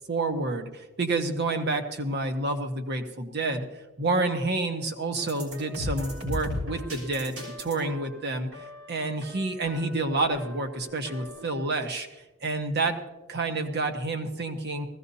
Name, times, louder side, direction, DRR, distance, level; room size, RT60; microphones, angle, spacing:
voice 1, 0.1-3.7 4.0-8.5 8.9-12.1 12.4-13.0 13.3-14.9, right 2 dB, 50° right, 6 dB, 1.3 m, -29 dB
sound 1, 5.2-11.6, left 1 dB, 85° right, 6.2 m, -38 dB
20.0 x 16.0 x 2.8 m, 1.0 s
head